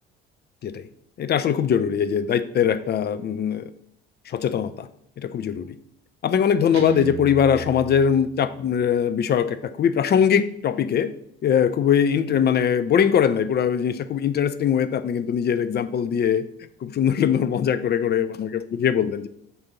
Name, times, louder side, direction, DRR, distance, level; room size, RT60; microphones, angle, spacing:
voice 1, 1.2-3.7 4.3-4.9 5.2-5.8 6.2-11.1 11.4-16.4 16.8-19.3, left 8 dB, 35° left, 12 dB, 0.5 m, -21 dB
Guitar, 6.7-8.8, right 8 dB, 85° right, 0.7 m, -35 dB
7.8 x 2.6 x 5.8 m, 0.75 s
hypercardioid pair, 60°, 31 cm